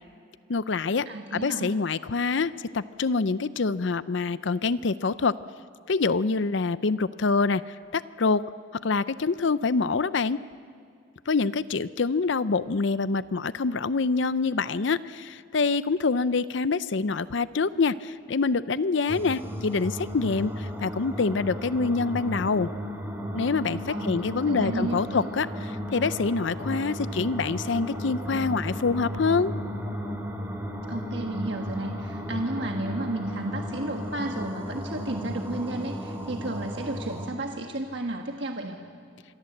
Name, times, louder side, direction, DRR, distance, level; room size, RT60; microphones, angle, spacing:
voice 1, 0.5-1.1 1.3-5.3 5.9-7.6 7.9-8.4 8.8-10.4 11.3-22.7 23.3-29.5, left 4 dB, 65° left, 15 dB, 0.6 m, -26 dB
voice 2, 1.1-1.7 23.9-25.3 30.9-38.8, right 2 dB, 60° right, 3 dB, 1.4 m, -33 dB
sound 1, 19.1-37.3, equal, 10° right, 2.7 m, -34 dB
26.5 x 22.5 x 7.9 m, 2.3 s
head